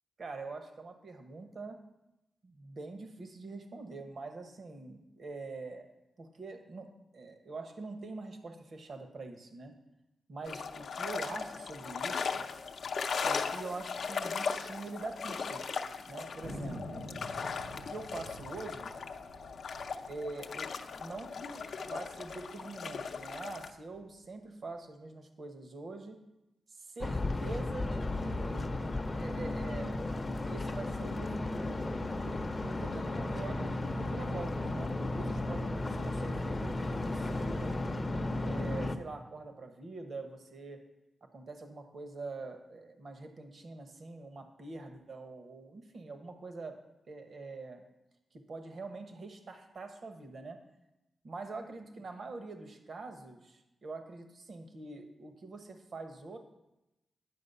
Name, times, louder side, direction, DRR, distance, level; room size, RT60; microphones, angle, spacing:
voice 1, 0.2-1.8 2.4-5.9 6.2-9.7 10.3-12.5 13.2-17.1 17.9-19.0 20.0-20.7 20.9-26.2 26.7-28.8 29.1-30.0 30.5-31.9 32.6-37.8 38.4-40.8 41.2-46.8 47.1-47.8 48.3-50.6 51.2-56.4, right 3 dB, 55° right, 6 dB, 1.1 m, -44 dB
sound 1, 10.4-23.7, left 5 dB, 70° left, 0.6 m, -38 dB
Thunder, 16.4-21.3 21.5-21.6 21.8-22.4 22.9-24.0, equal, 75° right, 2.6 m, -47 dB
sound 2, 27.0-39.0, left 2 dB, 30° left, 0.6 m, -34 dB
9.7 x 6.3 x 5.5 m, 0.92 s
cardioid pair, 95°, 0 cm